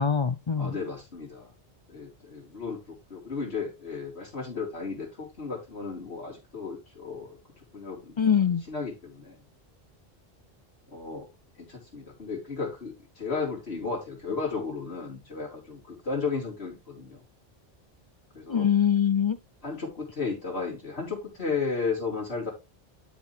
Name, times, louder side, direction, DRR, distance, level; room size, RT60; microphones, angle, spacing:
voice 1, 0.0-0.7 8.2-8.6 18.5-19.4, left 7 dB, 45° left, 0.4 m, -23 dB
voice 2, 0.6-1.5 1.9-2.8 3.1-7.4 7.7-9.4 10.9-11.3 11.7-17.2 18.3-18.7 19.6-22.5, left 4 dB, 80° left, 3.9 m, -34 dB
12.0 x 4.6 x 3.4 m
omnidirectional pair, 1.1 m